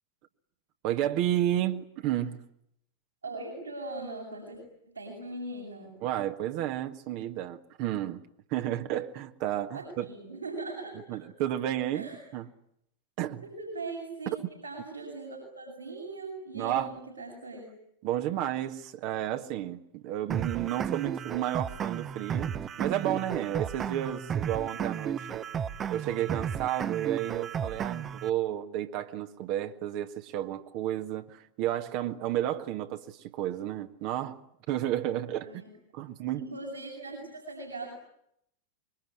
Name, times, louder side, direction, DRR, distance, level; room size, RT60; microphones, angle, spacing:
voice 1, 0.8-2.4 6.0-8.2 8.5-10.1 11.1-12.5 13.2-13.4 14.4-14.5 16.5-16.9 18.0-22.5 22.8-25.4 25.9-35.6 35.9-36.5, right 12 dB, 45° right, 1.6 m, -32 dB
voice 2, 3.2-4.6 4.8-6.0 9.7-11.2 11.9-12.2 13.4-14.3 14.6-17.7 35.4-35.7 36.2-37.9, right 2 dB, 80° right, 7.6 m, -40 dB
sound 1, 20.3-28.3, right 8 dB, 25° right, 1.1 m, -33 dB
26.0 x 23.0 x 9.9 m
figure-of-eight pair, 90°, 0 cm